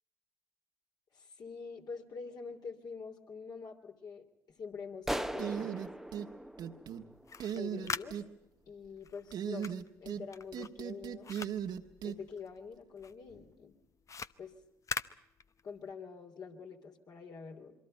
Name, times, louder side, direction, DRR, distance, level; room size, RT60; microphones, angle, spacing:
voice 1, 1.1-5.9 7.5-8.2 8.7-11.4 12.0-13.7 14.4-14.5 15.6-17.7, left 5 dB, 55° left, 3 dB, 3.3 m, -46 dB
sound 1, 5.1-7.6, right 1 dB, 5° right, 0.9 m, -39 dB
sound 2, 5.4-6.3 6.6-7.0 7.4-8.3 9.3-10.2 10.5-12.2, right 9 dB, 60° right, 1.4 m, -37 dB
sound 3, 7.1-12.7 13.0-15.9, left 5 dB, 40° left, 0.8 m, -44 dB
27.0 x 23.5 x 5.4 m, 0.85 s
hypercardioid pair, 55°, 8 cm